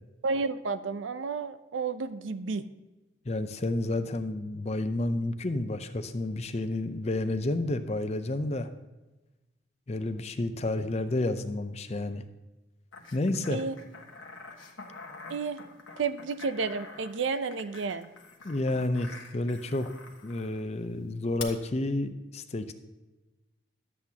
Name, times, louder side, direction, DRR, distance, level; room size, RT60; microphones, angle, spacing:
voice 1, 0.2-2.7 13.5-13.8 15.3-15.6 16.0-18.1, right 4 dB, 80° right, 13 dB, 0.5 m, -31 dB
voice 2, 3.3-8.7 9.9-12.2 13.1-13.6 18.4-19.9 20.2-22.7, left 2 dB, 35° left, 10 dB, 0.5 m, -30 dB
sound 1, 12.9-20.6 21.4-21.5, left 4 dB, 90° left, 1.3 m, -46 dB
12.0 x 8.2 x 2.8 m, 1.1 s
head